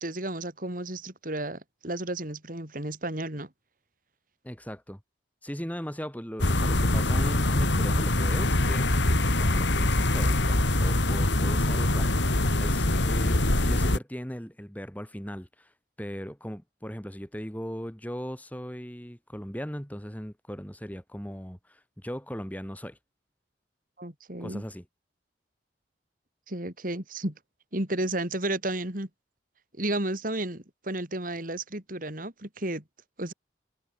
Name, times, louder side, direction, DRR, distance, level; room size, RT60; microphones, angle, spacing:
voice 1, 0.0-3.5 24.0-24.6 26.5-27.3 27.7-29.1 29.8-32.8 33.2-33.3, right 1 dB, 50° right, 3.9 m, -32 dB
voice 2, 4.4-5.0 5.4-15.7 16.0-23.0 24.4-24.9, equal, 10° left, 6.8 m, -38 dB
sound 1, 6.4-14.0, left 1 dB, 80° left, 2.6 m, -24 dB
head